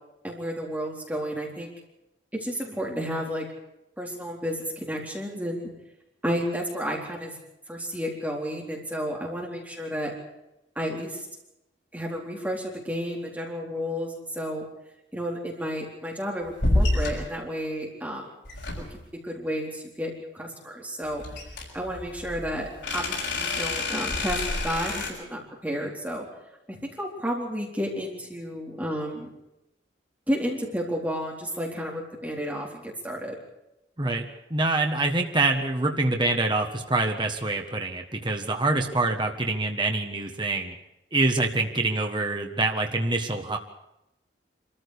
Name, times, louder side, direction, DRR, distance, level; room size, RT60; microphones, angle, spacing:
voice 1, 0.2-1.7 2.3-3.5 4.0-5.7 6.2-7.4 7.7-10.1 10.8-11.3 11.9-14.7 15.1-18.3 18.8-21.2 21.7-26.3 26.7-29.3 30.3-33.4, equal, 10° right, -1 dB, 4.1 m, -32 dB
sound 1, 16.6-17.3 18.4-19.1 21.2-25.1, left 2 dB, 80° left, 6.6 m, -28 dB
voice 2, 34.0-40.7 41.1-43.6, right 2 dB, 25° right, 3 dB, 1.5 m, -25 dB
25.0 x 14.5 x 8.4 m, 0.88 s
head